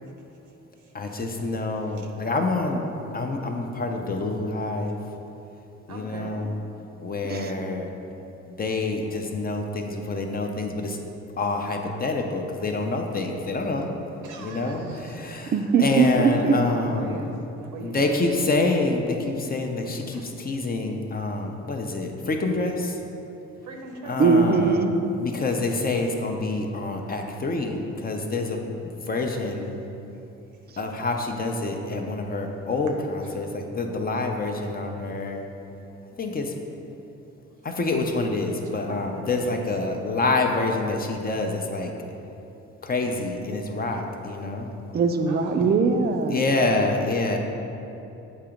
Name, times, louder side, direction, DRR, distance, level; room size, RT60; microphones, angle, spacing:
voice 1, 0.9-2.8 3.1-5.0 5.9-6.6 7.0-7.9 8.5-11.0 11.4-13.9 14.4-15.5 15.8-17.2 17.8-23.0 24.0-24.8 25.2-29.7 30.8-35.5 36.2-36.5 37.6-41.9 42.8-44.7 46.3-47.4, left 3 dB, 30° left, 3 dB, 0.6 m, -27 dB
voice 2, 5.9-6.4 14.2-15.5 16.4-18.4 20.1-20.3 23.6-24.2 33.2-33.3 38.9-40.1 43.0-43.2 45.3-45.8, right 3 dB, 85° right, 2 dB, 0.8 m, -40 dB
voice 3, 7.2-7.5 15.5-16.6 24.2-24.9 44.9-46.5, right 5 dB, 35° right, 7 dB, 0.4 m, -21 dB
7.3 x 2.9 x 5.0 m, 2.9 s
cardioid pair, 90°, 30 cm